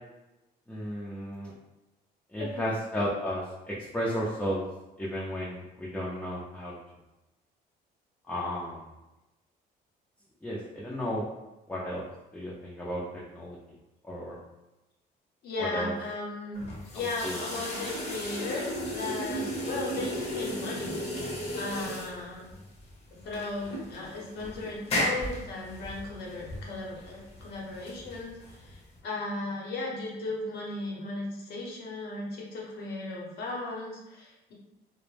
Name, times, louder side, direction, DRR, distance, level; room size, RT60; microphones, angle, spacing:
voice 1, 0.7-1.5 2.3-4.6 5.0-6.8 8.3-8.9 10.4-11.3 11.7-12.0 12.3-13.6 14.0-14.4 15.6-15.9 16.9-17.6, equal, 5° left, -6 dB, 0.4 m, -34 dB
voice 2, 15.4-21.0 21.5-22.5 23.1-34.5, left 2 dB, 70° left, -3 dB, 0.8 m, -36 dB
sound 1, 16.5-29.0, left 1 dB, 40° left, 0.7 m, -35 dB
2.1 x 2.0 x 3.1 m, 0.99 s
cardioid pair, 110°, 17 cm